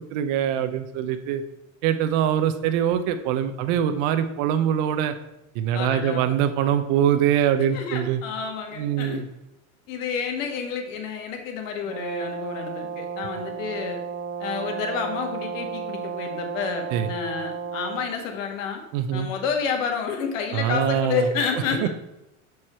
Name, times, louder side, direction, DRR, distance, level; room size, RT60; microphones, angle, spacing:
voice 1, 0.0-1.4 1.8-5.1 5.6-8.2 8.8-9.3 16.9-17.1 18.9-19.3 20.5-21.3 21.8-21.9, right 9 dB, 50° right, 9 dB, 0.6 m, -23 dB
voice 2, 5.7-6.3 7.6-9.2 9.9-14.0 14.4-18.8 19.1-21.9, left 6 dB, 70° left, 4 dB, 1.5 m, -29 dB
Brass instrument, 11.8-18.1, right 6 dB, 25° right, 1.0 m, -33 dB
6.4 x 4.7 x 4.3 m, 0.89 s
supercardioid pair, 125°, 40 cm